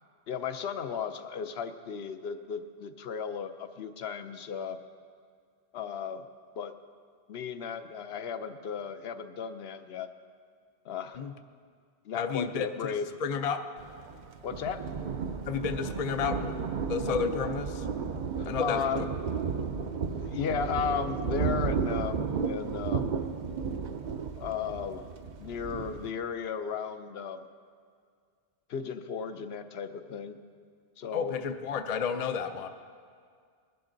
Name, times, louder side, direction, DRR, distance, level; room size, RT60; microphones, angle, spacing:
voice 1, 0.3-4.8 5.7-6.2 6.6-6.7 7.3-10.1 10.8-11.2 12.0-13.1 14.4-14.9 16.8-16.9 18.1-19.1 19.5-19.6 19.8-23.1 24.4-25.1 25.4-27.4 28.7-30.4 31.0-31.5, left 7 dB, 65° left, 10 dB, 0.9 m, -35 dB
voice 2, 12.1-12.9 13.2-13.6 15.5-16.6 16.9-17.9 18.4-18.8 31.1-32.7, left 6 dB, 40° left, 8 dB, 0.6 m, -31 dB
Thunder, 13.8-26.1, right 5 dB, 50° right, 0.6 m, -33 dB
21.0 x 12.0 x 3.9 m, 2.1 s
omnidirectional pair, 1.2 m